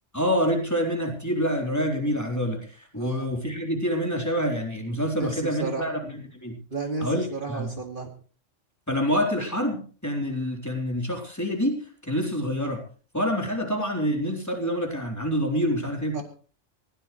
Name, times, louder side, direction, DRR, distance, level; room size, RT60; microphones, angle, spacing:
voice 1, 0.1-6.6 7.0-7.7 8.9-12.8 13.1-16.2, equal, 15° left, 1 dB, 3.9 m, -27 dB
voice 2, 3.0-3.3 5.2-5.9 6.7-8.1 16.1-16.2, right 3 dB, 45° right, 3 dB, 2.5 m, -32 dB
20.0 x 18.0 x 3.2 m, 0.40 s
omnidirectional pair, 1.3 m